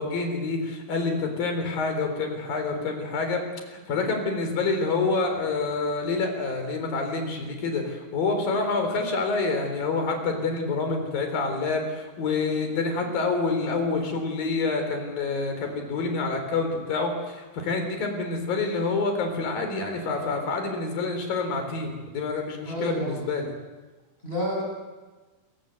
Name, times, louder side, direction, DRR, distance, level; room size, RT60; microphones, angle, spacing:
voice 1, 0.0-3.4 3.7-23.5, left 3 dB, 50° left, 5 dB, 5.2 m, -27 dB
voice 2, 22.7-23.3 24.2-24.6, equal, 10° left, -2 dB, 8.0 m, -29 dB
26.0 x 22.5 x 8.1 m, 1.2 s
omnidirectional pair, 5.7 m